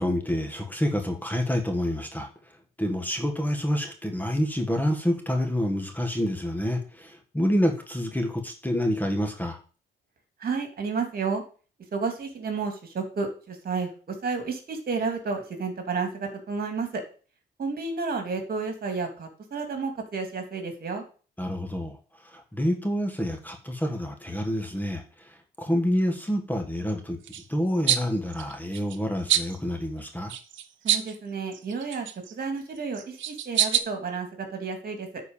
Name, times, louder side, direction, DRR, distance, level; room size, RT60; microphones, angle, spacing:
voice 1, 0.0-2.3 2.8-9.6 21.4-22.0 22.2-27.2 27.5-30.3, equal, 10° left, 4 dB, 1.6 m, -28 dB
voice 2, 10.4-11.4 11.9-17.0 17.6-21.0 30.8-35.2, right 4 dB, 50° right, 5 dB, 2.8 m, -31 dB
sound 1, 27.2-27.4 27.9-28.0 28.3-29.0 29.3-29.6 30.3-31.2 31.5-32.3 32.9-33.8, right 10 dB, 75° right, 1.0 m, -26 dB
9.5 x 4.6 x 7.2 m, 0.38 s
cardioid pair, 90°, 20 cm